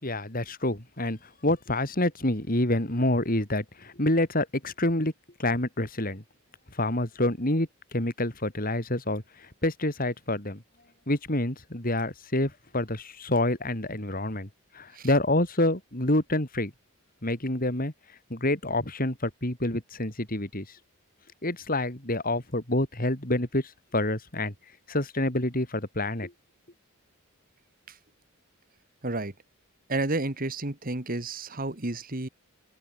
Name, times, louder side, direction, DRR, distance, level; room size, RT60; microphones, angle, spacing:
voice 1, 0.0-5.1 5.4-6.2 6.7-10.6 11.1-14.5 14.7-16.7 17.2-17.9 18.3-20.7 21.4-24.5 24.9-26.3, left 1 dB, 40° left, 3.9 m, -27 dB
voice 2, 29.0-29.3 29.9-32.3, right 2 dB, 40° right, 1.9 m, -31 dB
open air
head